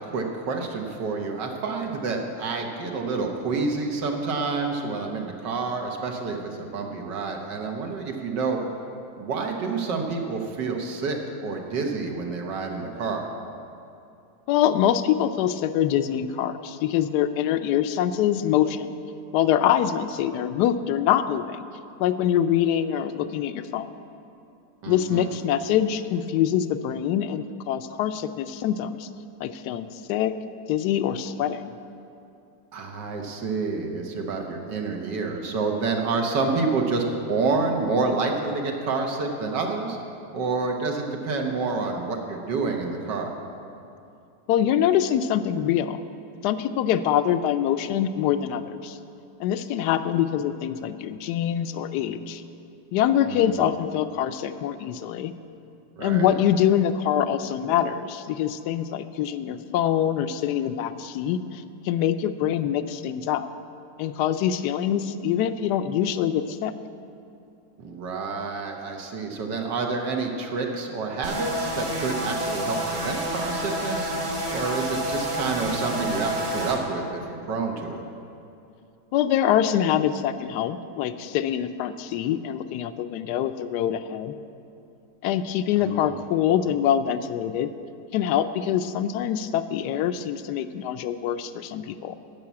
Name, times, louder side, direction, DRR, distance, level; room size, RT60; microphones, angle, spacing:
voice 1, 0.0-8.6 9.2-13.3 24.8-25.3 32.7-40.0 40.3-43.3 53.3-53.5 56.0-56.3 67.8-74.1 74.5-78.0 85.8-86.2, right 4 dB, 85° right, 2 dB, 1.8 m, -28 dB
voice 2, 14.5-18.9 19.3-21.6 22.0-23.9 24.9-29.1 29.4-30.3 30.7-31.7 44.5-46.0 46.4-49.0 49.4-52.4 52.9-55.3 56.0-63.5 64.0-66.7 79.1-84.4 85.2-87.7 88.1-92.1, left 10 dB, 75° left, 11 dB, 1.1 m, -24 dB
sound 1, 71.2-76.8, right 1 dB, 60° right, 2.2 m, -29 dB
10.5 x 7.0 x 8.4 m, 2.6 s
omnidirectional pair, 1.8 m